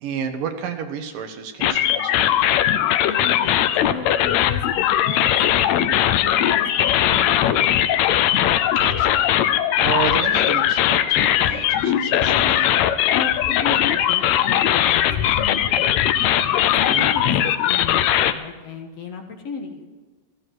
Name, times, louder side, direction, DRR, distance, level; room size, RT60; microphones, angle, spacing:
voice 1, 0.0-2.4 8.8-9.2 9.8-12.8 16.9-17.1, right 7 dB, 75° right, 5 dB, 2.9 m, -31 dB
sound 1, 1.6-18.3, left 11 dB, 85° left, 1.6 m, -19 dB
voice 2, 3.1-7.3 13.1-16.2 16.8-19.9, left 5 dB, 55° left, 2 dB, 2.2 m, -34 dB
15.0 x 14.5 x 4.7 m, 1.3 s
omnidirectional pair, 4.0 m